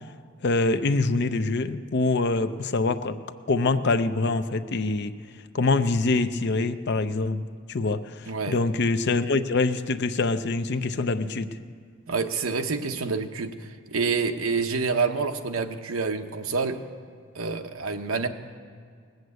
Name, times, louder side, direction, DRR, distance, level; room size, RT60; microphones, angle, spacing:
voice 1, 0.4-3.2 3.5-5.1 5.5-7.4 7.7-11.5, left 3 dB, 55° left, 10 dB, 0.6 m, -25 dB
voice 2, 8.3-8.6 12.1-16.8 17.3-18.3, right 4 dB, 85° right, 7 dB, 0.9 m, -27 dB
19.5 x 8.0 x 8.0 m, 2.1 s
head